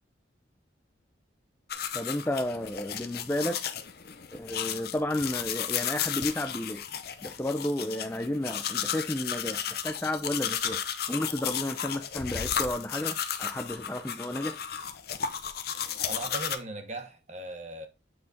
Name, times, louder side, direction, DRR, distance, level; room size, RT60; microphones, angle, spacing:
sound 1, 1.7-16.6, left 9 dB, 55° left, 0.6 m, -34 dB
voice 1, 1.9-3.7 4.3-6.8 7.2-10.8 11.1-14.6, left 1 dB, 10° left, 0.4 m, -32 dB
voice 2, 16.1-17.9, right 2 dB, 35° right, 1.0 m, -38 dB
7.7 x 3.9 x 3.9 m
head